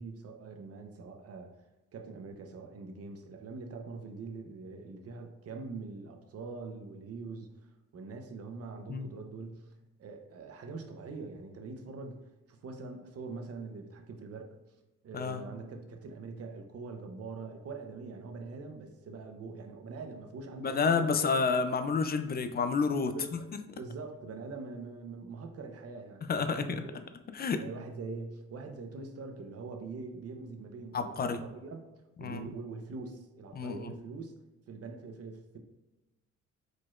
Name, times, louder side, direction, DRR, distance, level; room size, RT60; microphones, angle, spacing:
voice 1, 0.0-1.5 1.9-9.7 10.0-14.6 15.0-21.3 23.1-23.4 23.7-27.0 27.6-31.8 32.2-34.3 34.7-35.6, right 3 dB, 50° right, 4 dB, 0.8 m, -43 dB
voice 2, 20.6-23.1 26.3-26.8 27.3-27.6 30.9-31.4 32.2-32.5 33.5-33.8, left 5 dB, 30° left, 9 dB, 0.4 m, -29 dB
4.9 x 4.0 x 2.4 m, 1.1 s
cardioid pair, 90°, 30 cm